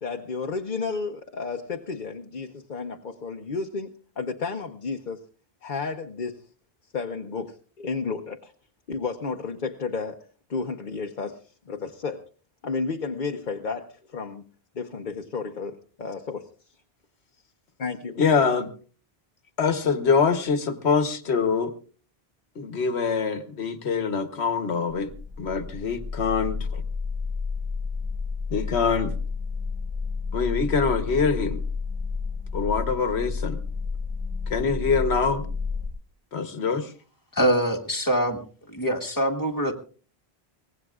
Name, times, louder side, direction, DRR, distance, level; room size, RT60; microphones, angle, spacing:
voice 1, 0.0-5.2 5.6-6.4 6.9-8.5 8.9-10.2 10.5-11.4 11.7-12.2 12.6-14.4 14.7-16.5 17.8-18.2, left 4 dB, 50° left, 4 dB, 1.0 m, -32 dB
voice 2, 18.2-18.7 19.6-21.7 22.6-25.1 25.4-26.8 28.5-29.1 30.3-31.6 32.5-33.6 34.5-35.4 36.3-36.9, left 5 dB, 85° left, 9 dB, 1.4 m, -24 dB
sound 1, 25.0-35.9, left 4 dB, 40° right, 7.2 m, -31 dB
voice 3, 37.3-38.4 38.7-39.7, equal, 20° left, 2 dB, 1.7 m, -24 dB
23.5 x 18.5 x 2.4 m, 0.39 s
omnidirectional pair, 1.1 m